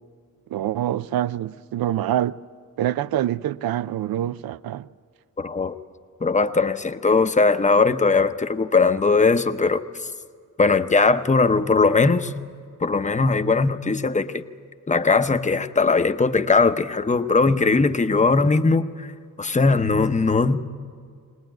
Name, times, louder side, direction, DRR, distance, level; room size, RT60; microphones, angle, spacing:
voice 1, 0.5-2.4 2.8-4.9, right 12 dB, 80° right, 0.5 m, -25 dB
voice 2, 5.4-5.8 6.2-9.8 10.6-12.3 12.8-14.4 14.9-19.1 19.4-20.6, left 4 dB, 20° left, 0.7 m, -19 dB
21.0 x 19.5 x 9.1 m
wide cardioid pair, 120°, 35 cm